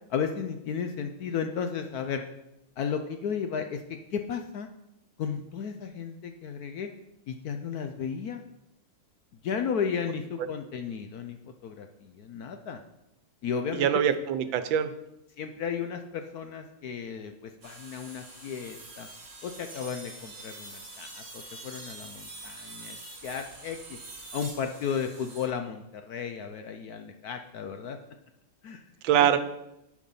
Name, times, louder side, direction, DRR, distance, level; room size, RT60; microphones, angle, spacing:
voice 1, 0.1-2.2 2.8-4.7 5.2-6.9 7.3-8.4 9.4-11.4 11.6-12.8 13.4-13.9 15.4-19.1 19.4-23.0 23.2-23.8 24.3-28.0 28.6-28.8 29.2-29.4, left 7 dB, 70° left, 6 dB, 0.9 m, -34 dB
voice 2, 13.7-14.9 29.0-29.4, right 9 dB, 85° right, 11 dB, 1.5 m, -23 dB
sound 1, 17.6-25.5, right 2 dB, 35° right, 2.0 m, -45 dB
10.5 x 5.1 x 5.5 m, 0.87 s
omnidirectional pair, 2.1 m